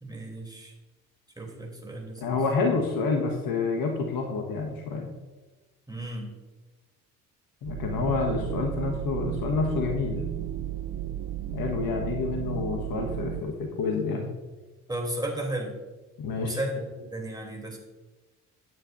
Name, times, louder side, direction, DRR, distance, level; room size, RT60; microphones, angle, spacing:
voice 1, 0.0-0.7 1.4-2.4 5.9-6.3 14.9-15.8 16.3-17.8, right 1 dB, 10° right, 0 dB, 3.3 m, -34 dB
voice 2, 2.2-5.1 7.6-10.3 11.5-14.3 16.2-16.6, left 4 dB, 50° left, 2 dB, 1.5 m, -28 dB
sound 1, 7.6-13.4, right 12 dB, 35° right, 0.6 m, -33 dB
17.0 x 9.2 x 2.7 m, 1.2 s
figure-of-eight pair, 45°, 44 cm